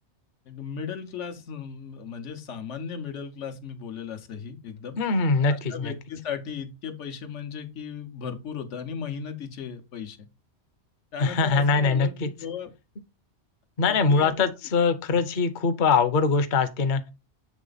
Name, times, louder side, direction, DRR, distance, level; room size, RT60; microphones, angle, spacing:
voice 1, 0.5-5.0 5.4-10.3 11.1-12.7 13.9-14.3 15.1-15.2, left 7 dB, 85° left, 1.2 m, -36 dB
voice 2, 5.0-5.9 11.2-12.3 13.8-17.1, left 4 dB, 50° left, 0.7 m, -22 dB
7.4 x 3.3 x 3.9 m
omnidirectional pair, 1.2 m